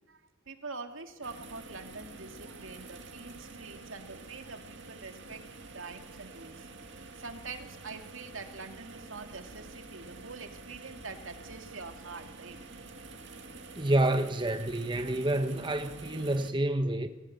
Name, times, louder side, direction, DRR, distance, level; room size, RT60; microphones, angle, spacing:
voice 1, 0.5-5.4 5.7-6.7 7.2-12.6 15.0-15.2, right 4 dB, 80° right, 2.3 m, -45 dB
sound 1, 1.2-16.5, right 3 dB, 60° right, 2.2 m, -48 dB
voice 2, 13.8-17.1, right 1 dB, 25° right, 1.1 m, -28 dB
24.5 x 17.0 x 8.0 m
head